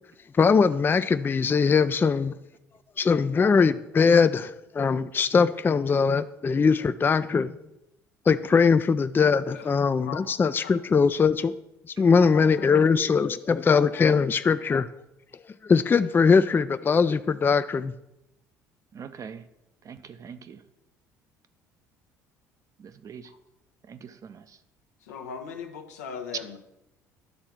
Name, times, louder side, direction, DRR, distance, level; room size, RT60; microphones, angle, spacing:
voice 1, 0.4-2.3 3.0-7.5 8.3-11.5 12.0-14.9 15.6-17.9, left 5 dB, 25° left, 12 dB, 0.4 m, -21 dB
voice 2, 12.2-12.7 23.2-23.4 25.1-26.6, left 7 dB, 85° left, 5 dB, 0.9 m, -39 dB
voice 3, 18.9-19.4 19.9-20.6 22.8-23.3 23.9-24.4, right 7 dB, 40° right, 11 dB, 0.7 m, -43 dB
10.5 x 3.8 x 5.9 m, 0.87 s
hypercardioid pair, 60°, 9 cm